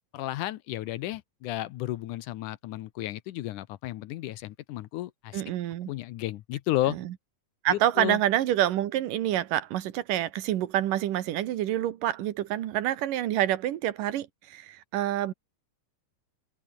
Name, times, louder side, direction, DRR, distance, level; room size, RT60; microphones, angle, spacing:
voice 1, 0.1-5.4 5.9-7.0 7.7-8.2, left 15 dB, 75° left, 2.2 m, -33 dB
voice 2, 5.3-5.9 6.9-7.1 7.6-15.3, right 12 dB, 75° right, 2.9 m, -27 dB
omnidirectional pair, 3.8 m